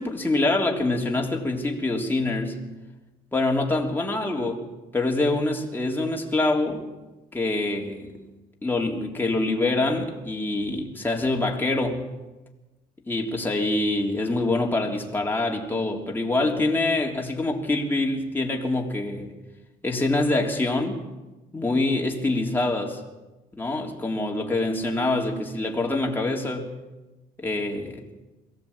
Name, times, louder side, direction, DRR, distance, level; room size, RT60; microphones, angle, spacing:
voice 1, 0.0-2.6 3.3-4.6 4.9-6.9 7.3-8.2 8.6-12.1 13.1-19.3 19.8-21.0 21.5-23.0 23.5-26.7 27.4-28.0, left 2 dB, 10° left, 3.5 m, -25 dB
22.5 x 16.5 x 8.7 m
cardioid pair, 110°, 17 cm